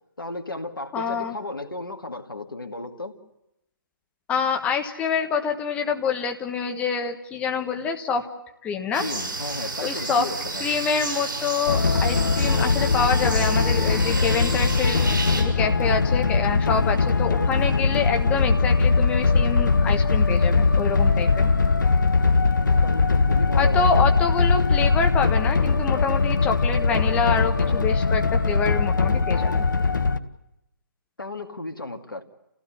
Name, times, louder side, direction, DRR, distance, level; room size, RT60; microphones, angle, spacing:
voice 1, 0.2-3.1 9.0-10.6 22.8-23.9 31.2-32.2, left 2 dB, 75° left, 5 dB, 2.3 m, -34 dB
voice 2, 0.9-1.3 4.3-8.3 8.6-9.1 9.8-10.3 10.6-21.5 23.6-29.6, left 5 dB, 10° left, 4 dB, 1.4 m, -26 dB
sound 1, 8.9-15.4, right 3 dB, 65° right, 6.8 m, -31 dB
sound 2, 11.7-30.2, left 4 dB, 60° left, 1.1 m, -21 dB
28.0 x 16.0 x 9.4 m, 0.89 s
figure-of-eight pair, 140°, 11 cm